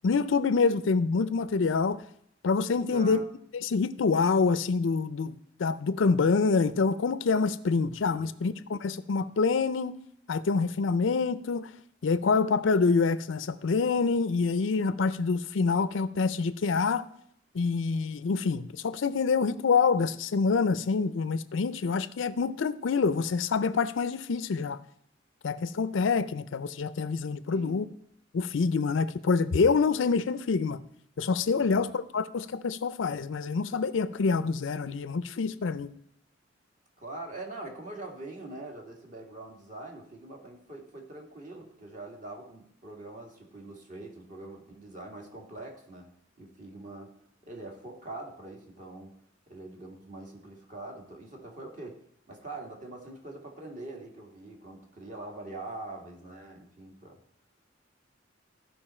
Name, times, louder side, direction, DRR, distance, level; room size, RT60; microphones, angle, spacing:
voice 1, 0.0-2.0 2.4-3.2 3.6-10.0 10.3-11.7 12.0-17.1 17.5-24.8 25.4-27.9 28.3-30.8 31.2-35.9, left 4 dB, 70° left, 0.5 m, -26 dB
voice 2, 2.9-3.3 8.2-8.4 27.5-27.8 31.6-31.8 37.0-46.1 46.4-47.1 47.5-49.2 49.5-57.2, right 2 dB, 40° right, 2.0 m, -43 dB
15.0 x 5.2 x 4.3 m
head